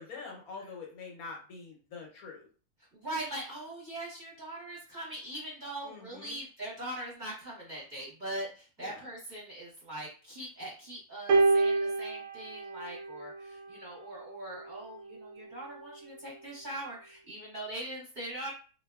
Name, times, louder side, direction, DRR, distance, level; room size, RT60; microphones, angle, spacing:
voice 1, 0.0-2.5 5.8-6.3 8.8-9.0, left 4 dB, 70° left, 0 dB, 1.2 m, -45 dB
voice 2, 2.9-18.5, right 1 dB, 35° right, -5 dB, 1.0 m, -41 dB
sound 1, 11.3-13.8 14.8-15.0, right 3 dB, 65° right, 0.7 m, -28 dB
3.7 x 2.5 x 2.3 m, 0.37 s
omnidirectional pair, 1.7 m